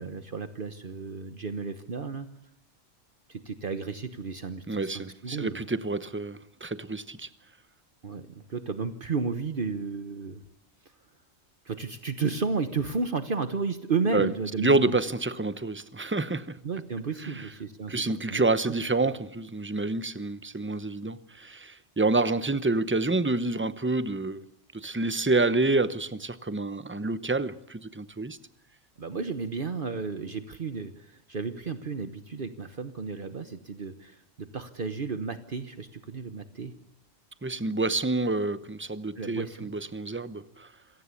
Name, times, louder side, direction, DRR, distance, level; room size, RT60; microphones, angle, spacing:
voice 1, 0.0-2.3 3.3-5.7 8.0-10.4 11.6-15.0 16.6-18.7 29.0-36.7 39.2-39.7, right 4 dB, 55° right, 1.2 m, -33 dB
voice 2, 4.7-7.3 14.1-14.3 14.6-16.6 17.2-17.5 17.9-24.4 24.7-28.4 37.4-40.7, right 2 dB, 10° right, 0.8 m, -28 dB
26.5 x 17.5 x 8.4 m
omnidirectional pair, 1.1 m